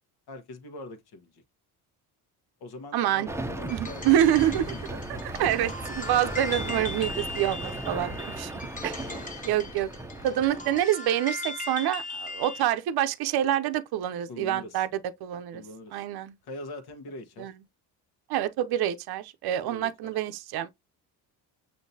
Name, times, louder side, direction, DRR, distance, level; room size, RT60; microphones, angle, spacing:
voice 1, 0.3-1.4 2.6-4.8 5.1-5.2 9.0-9.2 14.3-14.8 15.5-16.0 16.4-17.5 19.6-20.1, left 2 dB, 65° left, 1.2 m, -43 dB
voice 2, 2.9-3.3 3.7-4.7 5.2-8.5 8.8-9.1 9.4-9.9 10.2-14.9 15.2-15.6 15.9-16.3 17.4-17.5 18.3-20.7, right 11 dB, 65° right, 0.6 m, -26 dB
sound 1, 3.3-10.8, right 1 dB, 5° right, 0.6 m, -37 dB
sound 2, 3.7-12.7, left 3 dB, 20° left, 1.1 m, -39 dB
6.4 x 2.8 x 2.7 m
cardioid pair, 80°, 41 cm